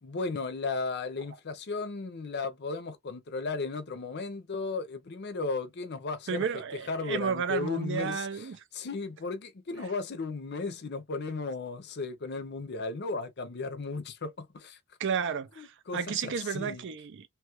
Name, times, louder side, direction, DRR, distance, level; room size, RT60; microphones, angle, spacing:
voice 1, 0.0-6.5 6.9-14.8 15.6-16.8, left 3 dB, 50° left, 0.6 m, -35 dB
voice 2, 6.3-8.6 15.0-17.3, right 6 dB, 60° right, 0.4 m, -32 dB
3.0 x 2.3 x 3.0 m
head